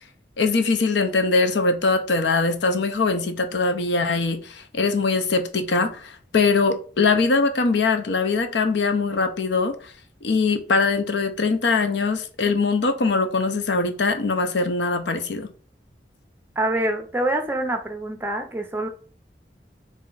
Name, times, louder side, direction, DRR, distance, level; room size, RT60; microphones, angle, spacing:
voice 1, 0.4-9.9 10.2-15.5, left 4 dB, 75° left, 0.6 m, -22 dB
voice 2, 16.6-18.9, right 1 dB, 10° right, 0.5 m, -25 dB
4.2 x 2.6 x 3.8 m
head